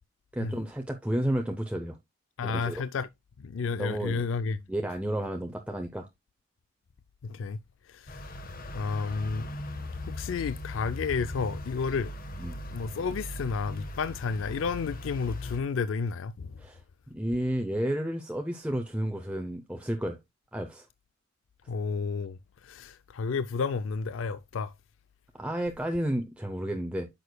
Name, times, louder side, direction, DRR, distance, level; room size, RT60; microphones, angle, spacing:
voice 1, 0.3-2.0 2.4-2.8 3.8-4.2 4.7-6.1 12.4-12.6 16.6-16.8 17.1-20.2 20.5-20.9 25.3-27.1, right 1 dB, 5° right, 0.6 m, -31 dB
voice 2, 2.4-3.1 3.4-4.6 7.2-7.6 7.9-8.2 8.7-9.5 10.1-12.1 12.7-16.5 21.7-22.4 22.6-24.7, left 5 dB, 70° left, 0.4 m, -31 dB
sound 1, 8.1-15.6, left 1 dB, 50° left, 1.2 m, -39 dB
9.4 x 6.4 x 2.2 m
head